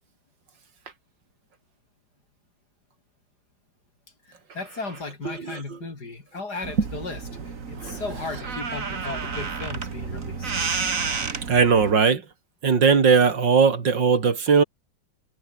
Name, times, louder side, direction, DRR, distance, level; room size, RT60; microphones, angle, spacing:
voice 1, 4.2-10.6, left 3 dB, 60° left, 4.6 m, -36 dB
voice 2, 5.2-5.6 7.8-8.0 11.5-12.2 12.6-14.6, right 5 dB, 80° right, 3.3 m, -19 dB
sound 1, 6.6-11.9, right 5 dB, 45° right, 2.4 m, -30 dB
omnidirectional pair, 1.9 m